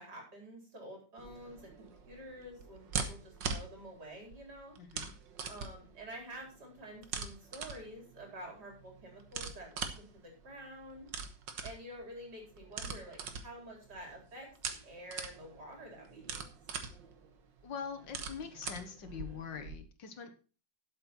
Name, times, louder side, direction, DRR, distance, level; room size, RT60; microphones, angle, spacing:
voice 1, 0.0-4.7 5.5-11.1 11.6-16.4, right 1 dB, 65° right, 0 dB, 4.7 m, -49 dB
sound 1, 1.2-19.8, right 5 dB, 85° right, 2.0 m, -43 dB
voice 2, 4.8-5.1 17.6-20.3, left 7 dB, 85° left, 8 dB, 2.2 m, -43 dB
12.0 x 7.7 x 4.4 m, 0.36 s
omnidirectional pair, 1.9 m